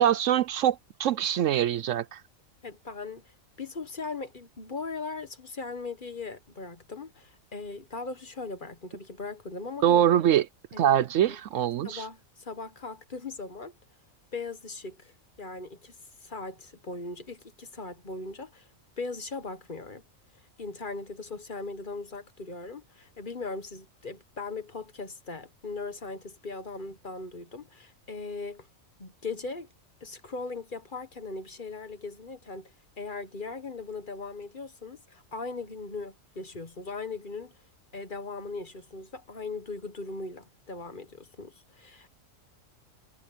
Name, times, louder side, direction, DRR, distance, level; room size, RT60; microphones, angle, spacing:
voice 1, 0.0-2.2 9.8-10.5 10.8-12.1, right 10 dB, 70° right, 0.9 m, -23 dB
voice 2, 2.6-3.2 3.6-10.0 10.7-11.4 11.8-13.7 14.3-16.0 16.2-18.7 19.0-20.0 20.6-28.7 29.0-29.7 30.0-37.5 37.9-42.1, left 3 dB, 40° left, 1.4 m, -39 dB
omnidirectional pair, 1.4 m